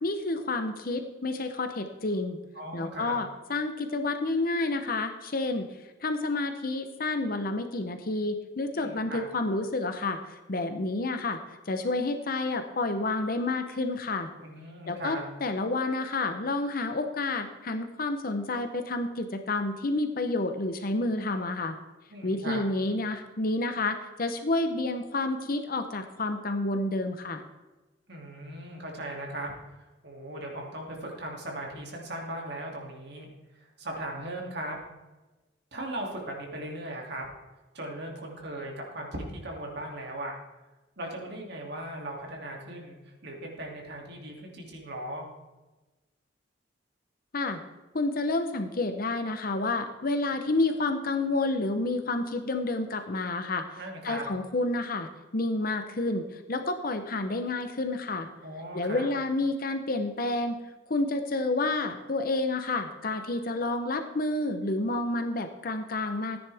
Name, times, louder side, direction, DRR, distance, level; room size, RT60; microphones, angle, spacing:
voice 1, 0.0-2.4 2.7-5.7 6.0-14.3 14.9-21.8 22.2-27.4 47.3-47.6 47.9-53.7 54.0-58.3 58.7-60.6 60.9-66.4, left 2 dB, 50° left, 7 dB, 0.8 m, -29 dB
voice 2, 2.5-3.1 8.7-9.2 14.4-15.2 22.1-22.6 28.1-33.3 33.5-34.8 35.7-37.3 37.7-40.3 41.0-43.0 43.2-45.3 53.8-54.2 58.4-59.1, right 1 dB, 60° right, 0 dB, 2.6 m, -38 dB
14.5 x 9.7 x 3.5 m, 1.1 s
head